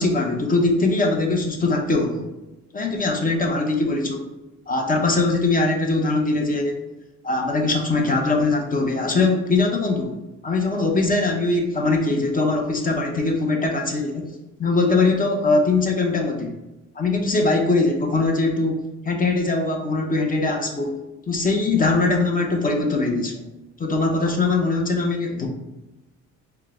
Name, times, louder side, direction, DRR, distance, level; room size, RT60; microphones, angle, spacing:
voice 1, 0.0-2.3 2.7-4.2 4.7-6.8 7.2-14.3 14.6-16.6 16.9-21.0 21.3-23.4 23.8-25.5, left 3 dB, 30° left, 2 dB, 0.8 m, -21 dB
4.4 x 2.2 x 3.5 m, 1.0 s
cardioid pair, 90°, 30 cm